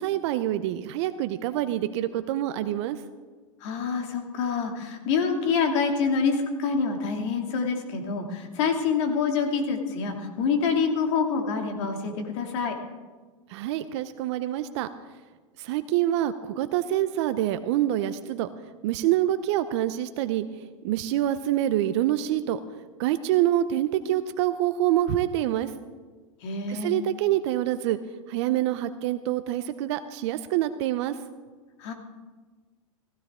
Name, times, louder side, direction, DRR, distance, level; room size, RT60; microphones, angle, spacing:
voice 1, 0.0-3.0 13.5-14.9 15.6-18.5 18.8-20.4 20.8-22.6 23.0-25.7 26.7-28.0 28.3-31.1, right 13 dB, 55° right, 11 dB, 0.7 m, -26 dB
voice 2, 3.6-12.7 26.4-26.9 31.8-31.9, left 5 dB, 60° left, 3 dB, 2.6 m, -26 dB
15.5 x 15.5 x 3.7 m, 1.4 s
hypercardioid pair, 115°, 17 cm